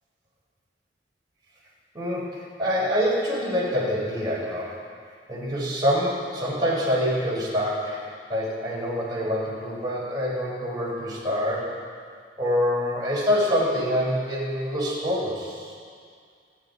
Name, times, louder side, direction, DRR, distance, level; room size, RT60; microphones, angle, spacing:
voice 1, 1.9-2.3 2.6-4.7 5.3-8.0 8.3-11.7 12.4-15.7, equal, 25° right, -7 dB, 4.2 m, -25 dB
26.5 x 8.9 x 4.0 m, 2.2 s
head